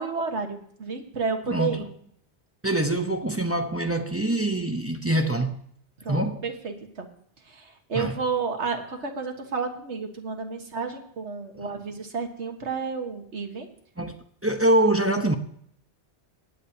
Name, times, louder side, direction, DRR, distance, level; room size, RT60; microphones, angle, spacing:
voice 1, 0.0-1.9 6.0-7.1 7.5-13.7, right 5 dB, 90° right, 1.7 m, -31 dB
voice 2, 1.5-1.9 2.6-5.6 6.1-6.4 7.9-8.2 11.6-11.7 14.0-14.2 14.4-15.4, right 1 dB, 15° right, 0.7 m, -24 dB
19.0 x 8.8 x 2.8 m
omnidirectional pair, 1.1 m